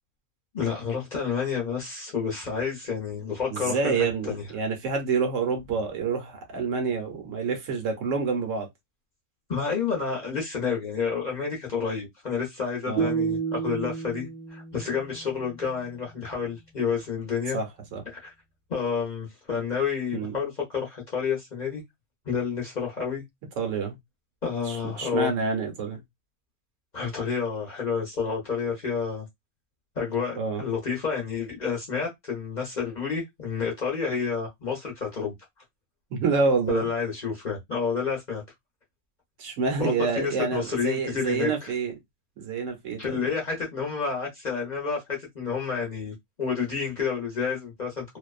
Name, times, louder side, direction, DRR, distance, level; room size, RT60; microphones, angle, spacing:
voice 1, 0.5-4.4 9.5-17.6 18.1-18.3 18.7-21.8 22.3-23.2 24.4-25.3 26.9-29.3 30.0-35.3 36.7-38.4 39.8-41.7 43.0-48.2, left 6 dB, 40° left, 0.8 m, -29 dB
voice 2, 3.5-8.7 12.9-13.1 17.5-18.0 20.1-20.4 23.6-24.0 24.7-26.0 30.4-30.6 36.1-36.9 39.4-41.9 42.4-43.3, right 4 dB, 70° right, 1.1 m, -28 dB
sound 1, 13.0-16.1, right 6 dB, 45° right, 0.9 m, -31 dB
2.6 x 2.2 x 2.3 m
omnidirectional pair, 1.4 m